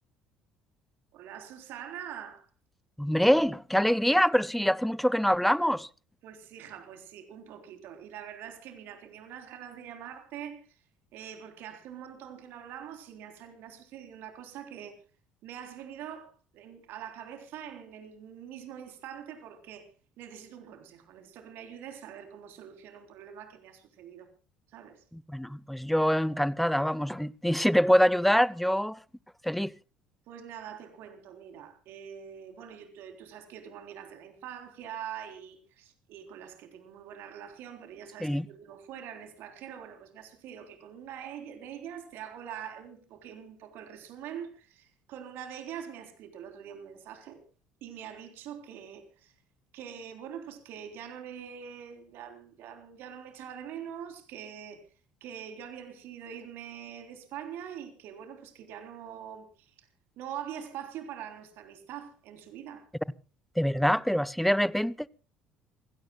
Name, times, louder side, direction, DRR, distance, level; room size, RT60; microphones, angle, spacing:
voice 1, 1.1-2.5 6.2-10.8 11.1-15.0 15.4-19.9 20.2-24.3 24.7-25.0 30.3-47.4 47.8-49.3 49.7-54.8 55.2-59.9 60.2-62.9, right 9 dB, 60° right, 3.7 m, -44 dB
voice 2, 3.0-5.9 25.1-29.0 29.4-29.7 38.2-38.4 63.6-65.1, equal, ahead, 0.7 m, -25 dB
27.5 x 17.0 x 2.3 m
figure-of-eight pair, 55°, 4 cm